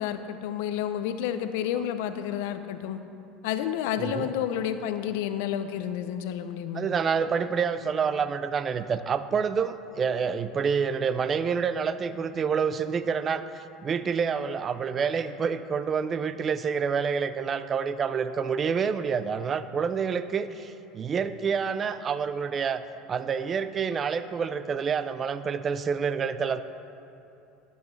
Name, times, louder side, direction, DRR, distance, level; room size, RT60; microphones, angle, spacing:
voice 1, 0.0-3.0 3.4-6.9, left 10 dB, 75° left, 10 dB, 0.5 m, -30 dB
voice 2, 4.0-4.3 6.7-22.8 23.1-26.6, right 6 dB, 35° right, 13 dB, 0.4 m, -28 dB
12.0 x 8.0 x 3.2 m, 2.8 s
supercardioid pair, 95°, 0 cm